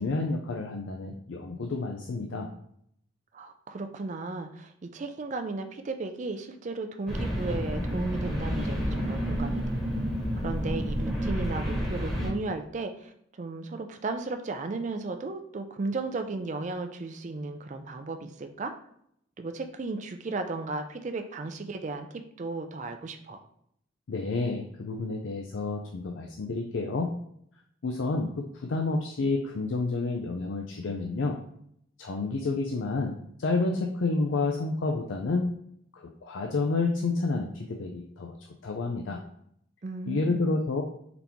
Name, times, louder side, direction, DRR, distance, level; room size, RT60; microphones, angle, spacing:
voice 1, 0.0-2.5 24.1-27.1 27.8-31.4 32.0-35.5 35.9-38.4 38.6-39.2 40.1-40.8, left 3 dB, 80° left, 1 dB, 0.4 m, -29 dB
voice 2, 3.3-9.6 10.4-13.1 13.4-18.7 19.4-23.5 39.8-40.5, right 3 dB, 40° right, 6 dB, 0.4 m, -35 dB
sound 1, 7.1-12.3, equal, ahead, 1.1 m, -30 dB
3.9 x 2.9 x 3.5 m, 0.70 s
head